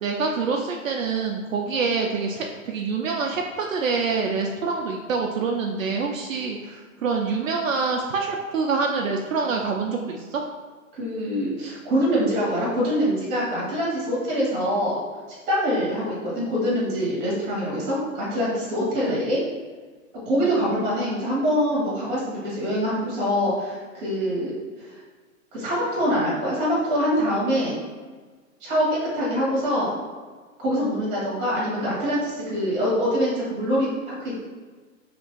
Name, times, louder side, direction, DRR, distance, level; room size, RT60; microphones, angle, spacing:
voice 1, 0.0-10.4 19.1-19.2 20.4-20.5, right 4 dB, 70° right, 1 dB, 0.5 m, -26 dB
voice 2, 10.9-15.0 15.5-19.4 20.2-25.0 25.5-27.8 28.6-29.9 30.6-34.4, equal, 20° right, -6 dB, 1.1 m, -24 dB
2.9 x 2.6 x 3.7 m, 1.4 s
hypercardioid pair, 155°, 42 cm